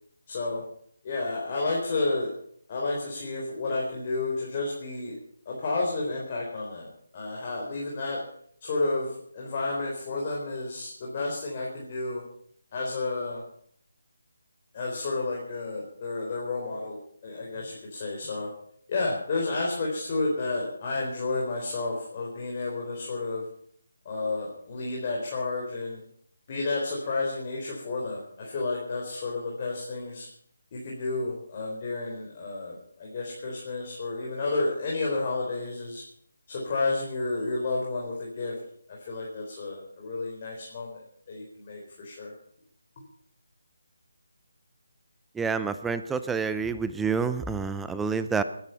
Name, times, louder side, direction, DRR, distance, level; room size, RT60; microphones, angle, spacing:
voice 1, 0.3-0.6 1.0-2.3 2.7-5.2 5.5-8.2 8.6-12.2 12.7-13.4 14.7-17.0 17.2-18.5 18.9-23.4 24.0-26.0 26.5-30.3 30.7-36.0 36.5-38.6 38.9-42.3, left 3 dB, 35° left, -2 dB, 4.0 m, -31 dB
voice 2, 45.3-48.4, right 5 dB, 5° right, 11 dB, 0.6 m, -28 dB
20.0 x 10.5 x 5.7 m, 0.63 s
figure-of-eight pair, 160°, 0 cm